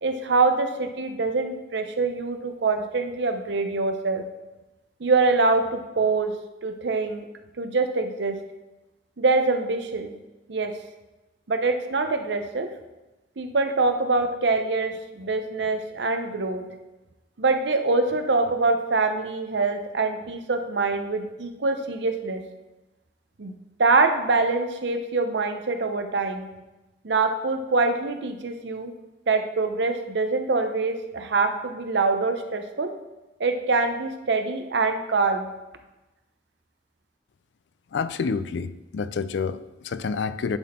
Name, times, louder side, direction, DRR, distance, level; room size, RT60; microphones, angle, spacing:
voice 1, 0.0-4.2 5.0-7.3 7.6-8.4 9.2-10.2 10.5-10.8 11.5-12.7 13.4-16.6 17.4-22.4 23.4-26.5 27.0-28.9 29.3-32.9 33.4-35.5, right 3 dB, 75° right, 7 dB, 0.7 m, -24 dB
voice 2, 37.9-40.6, left 5 dB, 80° left, 14 dB, 0.4 m, -28 dB
10.5 x 4.2 x 4.2 m, 1.1 s
head